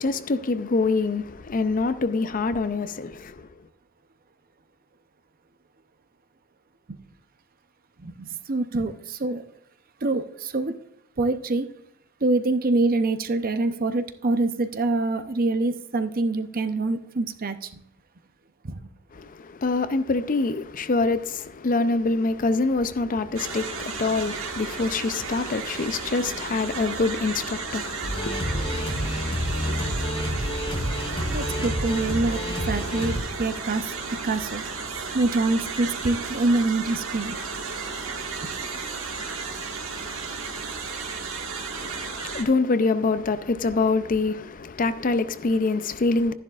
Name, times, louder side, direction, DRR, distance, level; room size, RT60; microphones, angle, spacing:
voice 1, 0.0-3.5 19.1-28.7 41.8-46.3, left 3 dB, 40° left, 0.5 m, -25 dB
voice 2, 8.0-9.4 10.0-10.7 11.2-11.7 12.2-17.8 18.6-18.8 30.8-30.9 31.3-32.4 32.7-33.9 34.2-34.6 35.1-37.4, right 2 dB, 45° right, 0.7 m, -25 dB
sound 1, 23.4-42.4, right 4 dB, 75° right, 1.7 m, -34 dB
sound 2, 28.0-33.2, equal, 25° left, 3.3 m, -28 dB
12.5 x 11.0 x 2.4 m
head